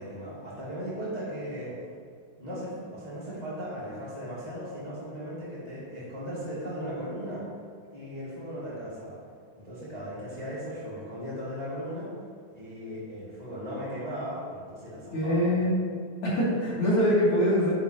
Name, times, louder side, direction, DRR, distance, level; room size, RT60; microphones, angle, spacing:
voice 1, 0.0-1.8 2.4-7.4 7.9-9.2 9.5-12.1 12.5-15.8, equal, 15° left, -9 dB, 1.7 m, -37 dB
voice 2, 15.1-15.7 16.2-17.7, equal, 50° left, -7 dB, 3.3 m, -23 dB
9.9 x 9.2 x 2.8 m, 2.1 s
omnidirectional pair, 3.4 m